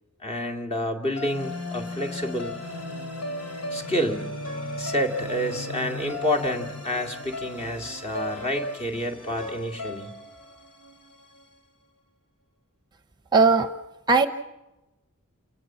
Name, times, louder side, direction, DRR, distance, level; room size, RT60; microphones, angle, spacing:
voice 1, 0.2-2.6 3.7-4.4 4.8-10.1, equal, 30° left, 3 dB, 2.4 m, -29 dB
sound 1, 1.2-11.4, left 2 dB, 80° left, 3.9 m, -36 dB
voice 2, 13.3-13.7 14.1-14.3, right 4 dB, 20° right, 9 dB, 0.8 m, -17 dB
28.5 x 19.0 x 7.5 m, 0.99 s
head